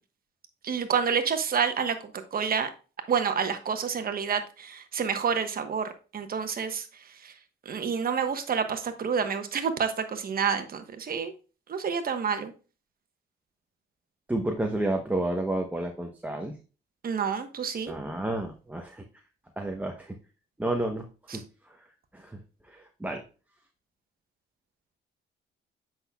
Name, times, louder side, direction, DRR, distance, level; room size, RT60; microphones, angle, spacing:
voice 1, 0.6-2.0 2.3-2.7 3.1-6.8 7.2-7.3 7.6-11.3 11.7-12.5 17.0-17.9 21.3-21.4, right 6 dB, 50° right, 8 dB, 1.1 m, -28 dB
voice 2, 14.3-16.6 17.9-19.0 19.6-20.1 20.6-21.1 21.3-21.9 22.1-23.2, right 1 dB, 10° right, 2 dB, 0.9 m, -31 dB
7.9 x 6.0 x 2.3 m, 0.34 s
cardioid pair, 90°, 20 cm